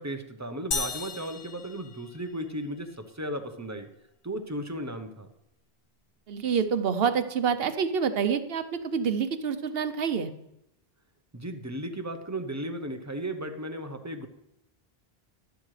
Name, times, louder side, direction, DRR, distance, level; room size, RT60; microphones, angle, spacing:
voice 1, 0.0-2.9 3.1-3.9 4.2-5.3 11.3-14.3, right 1 dB, 20° right, 6 dB, 0.8 m, -35 dB
sound 1, 0.7-2.6, left 4 dB, 70° left, 1.1 m, -35 dB
voice 2, 6.3-10.3, right 6 dB, 70° right, 10 dB, 1.0 m, -27 dB
11.5 x 11.5 x 3.3 m, 0.82 s
omnidirectional pair, 1.1 m